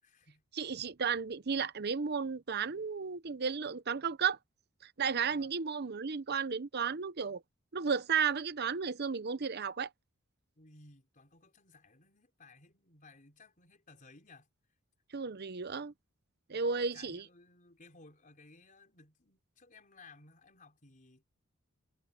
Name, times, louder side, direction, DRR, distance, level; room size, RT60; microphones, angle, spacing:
voice 1, 0.0-0.4 5.3-5.5 10.6-14.5 16.9-21.2, left 3 dB, 40° left, 4.4 m, -59 dB
voice 2, 0.6-4.4 5.0-7.4 7.7-9.9 15.1-15.9 16.5-17.2, right 6 dB, 50° right, 0.8 m, -33 dB
head